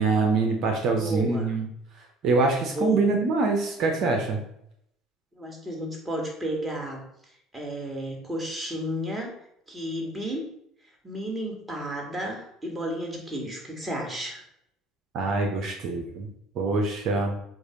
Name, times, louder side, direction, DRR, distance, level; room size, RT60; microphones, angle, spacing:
voice 1, 0.0-1.7 2.2-4.4 15.1-16.3 16.5-17.4, right 3 dB, 60° right, 2 dB, 1.1 m, -24 dB
voice 2, 0.9-1.5 2.6-3.2 5.3-9.3 9.7-10.4 11.0-14.4, equal, 15° right, 0 dB, 2.3 m, -32 dB
7.9 x 2.8 x 5.3 m, 0.75 s
hypercardioid pair, 75°, 0 cm